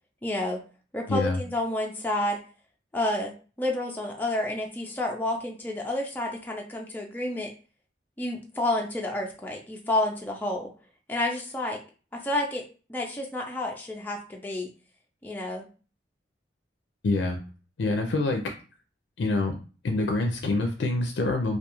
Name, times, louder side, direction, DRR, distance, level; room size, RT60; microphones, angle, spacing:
voice 1, 0.2-0.6 0.9-2.4 2.9-3.3 3.6-7.5 8.2-10.7 11.1-11.8 12.1-12.6 12.9-14.7 15.2-15.7, left 1 dB, 10° left, 0 dB, 0.4 m, -29 dB
voice 2, 17.0-17.4 17.8-18.4 19.2-19.6 19.8-21.6, left 2 dB, 80° left, 3 dB, 0.4 m, -26 dB
2.3 x 2.3 x 2.9 m, 0.36 s
head